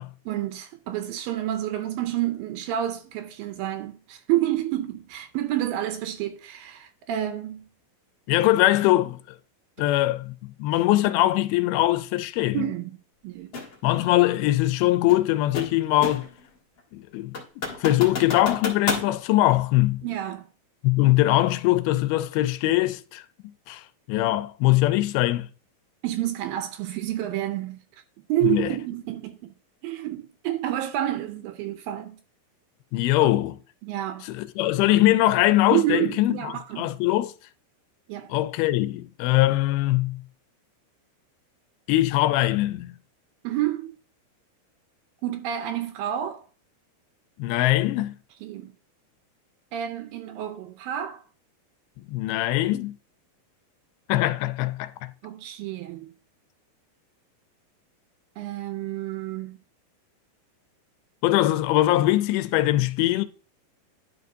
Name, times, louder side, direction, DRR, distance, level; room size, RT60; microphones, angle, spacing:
voice 1, 0.3-7.7 12.5-13.0 13.2-13.5 20.0-20.5 26.0-27.8 28.3-29.5 29.8-32.2 33.8-34.3 35.7-36.9 38.1-38.3 43.4-43.9 45.2-46.5 48.4-48.7 49.7-51.2 55.2-56.1 58.4-59.6, right 13 dB, 80° right, 2.3 m, -29 dB
voice 2, 8.3-9.4 9.8-12.7 13.8-16.3 16.9-17.4 17.8-20.1 20.8-23.2 23.7-25.5 28.4-28.7 32.9-33.6 34.2-37.3 38.3-40.2 41.9-43.0 47.4-48.1 52.1-53.0 54.1-55.1 61.2-63.3, left 16 dB, 85° left, 2.5 m, -22 dB
sound 1, 13.5-13.7 15.1-16.4 16.8-16.9 17.3-19.1, left 4 dB, 55° left, 1.5 m, -31 dB
11.0 x 5.4 x 2.6 m
omnidirectional pair, 4.3 m